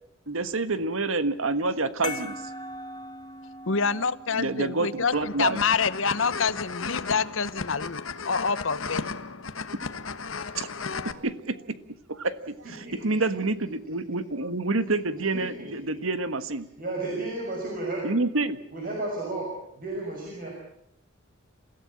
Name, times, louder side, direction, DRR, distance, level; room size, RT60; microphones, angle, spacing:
voice 1, 0.3-2.4 4.3-5.6 10.5-10.7 11.0-11.6 12.1-16.7 18.0-18.6, right 3 dB, 85° right, 12 dB, 1.5 m, -28 dB
sound 1, 2.0-7.1, left 2 dB, 20° left, 2.5 m, -41 dB
voice 2, 3.7-9.0, left 5 dB, 70° left, 15 dB, 1.0 m, -27 dB
sound 2, 5.1-11.1, left 4 dB, 90° left, 1.4 m, -35 dB
voice 3, 12.6-13.2 15.3-16.0 16.8-18.1 18.7-20.5, right 2 dB, 45° right, -1 dB, 6.2 m, -33 dB
28.0 x 16.0 x 8.7 m, 0.77 s
head